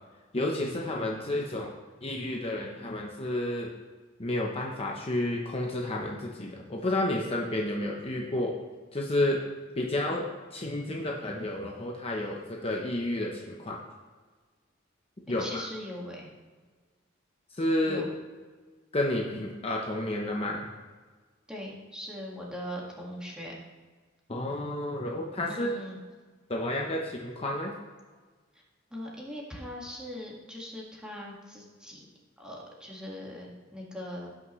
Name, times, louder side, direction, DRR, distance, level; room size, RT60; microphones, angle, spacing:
voice 1, 0.3-1.7 2.0-3.7 4.2-8.5 8.9-9.4 9.7-13.8 15.3-15.6 17.6-18.0 18.9-20.7 24.3-25.8 26.5-27.7, left 1 dB, 30° left, -1 dB, 0.9 m, -31 dB
voice 2, 15.3-16.3 17.9-18.1 21.5-23.5 25.5-26.0 28.9-32.0 32.4-34.3, equal, 5° right, -3 dB, 1.9 m, -40 dB
16.5 x 6.1 x 3.2 m, 1.4 s
head